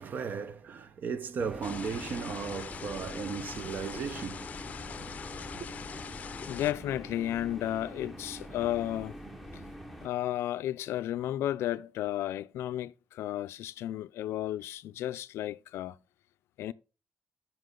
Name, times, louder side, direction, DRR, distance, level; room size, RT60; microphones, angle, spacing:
voice 1, 0.0-4.5 5.5-5.7, right 6 dB, 45° right, 0.7 m, -36 dB
sound 1, 1.4-10.1, equal, ahead, 0.9 m, -45 dB
sound 2, 1.6-6.7, left 7 dB, 35° left, 0.6 m, -42 dB
voice 2, 6.5-9.2 9.5-9.6 10.0-16.0 16.6-16.7, left 13 dB, 80° left, 0.4 m, -33 dB
13.0 x 5.8 x 3.8 m
cardioid pair, 155°, 4 cm